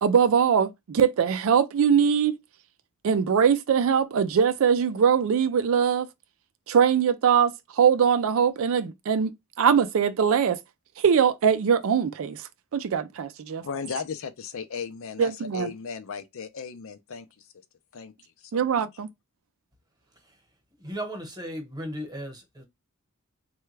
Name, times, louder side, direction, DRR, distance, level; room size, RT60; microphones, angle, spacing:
voice 1, 0.0-2.4 3.0-6.1 6.7-10.6 11.0-12.4 12.7-13.6 15.2-15.7 18.5-19.1, right 7 dB, 65° right, 0.4 m, -22 dB
voice 2, 13.6-17.5 17.9-18.6, left 6 dB, 65° left, 0.5 m, -36 dB
voice 3, 20.8-22.6, equal, 20° right, 1.1 m, -35 dB
3.3 x 2.3 x 3.2 m
head